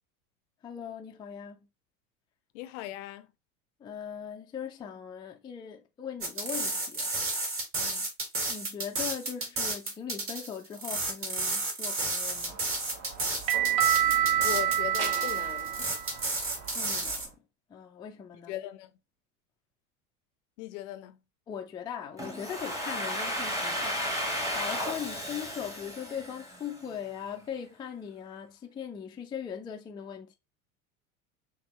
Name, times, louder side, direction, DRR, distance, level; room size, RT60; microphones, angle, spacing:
voice 1, 0.6-1.6 3.8-7.1 8.5-12.6 16.7-17.4 17.7-18.5 21.5-24.0 24.5-30.4, left 8 dB, 10° left, 0.4 m, -40 dB
voice 2, 2.5-3.3 7.8-8.1 14.4-15.9 18.5-18.9 20.6-21.2, left 14 dB, 55° left, 0.6 m, -39 dB
sound 1, 6.2-17.3, right 2 dB, 30° right, 1.5 m, -32 dB
sound 2, 12.4-17.2, right 10 dB, 50° right, 1.1 m, -28 dB
Domestic sounds home sounds, 22.2-26.9, equal, 5° right, 1.1 m, -33 dB
5.6 x 2.0 x 2.9 m
hypercardioid pair, 80°, 44 cm